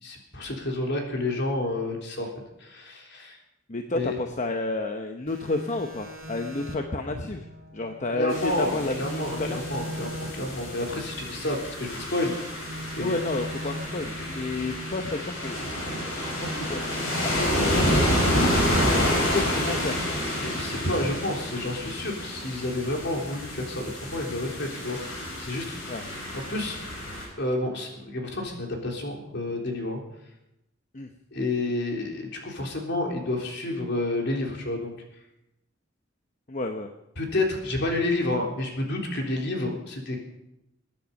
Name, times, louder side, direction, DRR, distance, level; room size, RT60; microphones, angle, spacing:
voice 1, 0.0-2.3 2.6-3.4 3.9-4.2 7.1-7.2 8.1-12.3 12.9-13.2 19.3-19.4 20.4-25.8 26.3-26.8 27.4-30.0 31.3-34.9 37.2-40.2, left 2 dB, 60° left, 1 dB, 3.5 m, -30 dB
voice 2, 3.7-7.4 7.7-9.6 13.0-15.6 16.2-17.9 18.4-18.5 19.1-20.0 25.9-26.0 30.9-31.1 36.5-36.9, left 2 dB, 40° left, 5 dB, 0.9 m, -31 dB
sound 1, 5.3-8.5 8.8-12.1 12.5-15.6 15.9-19.2, right 1 dB, 50° right, 2.9 m, -40 dB
sound 2, 8.3-27.3, equal, 80° left, 6.2 m, -29 dB
21.5 x 10.0 x 5.3 m, 0.89 s
head